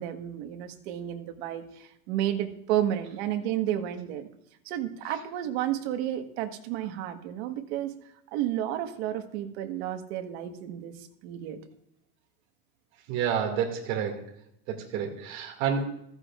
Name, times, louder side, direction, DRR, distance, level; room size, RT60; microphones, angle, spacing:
voice 1, 0.0-4.3 4.6-7.9 8.3-11.6, right 11 dB, 80° right, 6 dB, 1.5 m, -31 dB
voice 2, 13.1-14.2 14.7-15.8, right 7 dB, 55° right, 1 dB, 2.3 m, -29 dB
15.0 x 14.5 x 2.5 m, 0.77 s
cardioid pair, 170°, 32 cm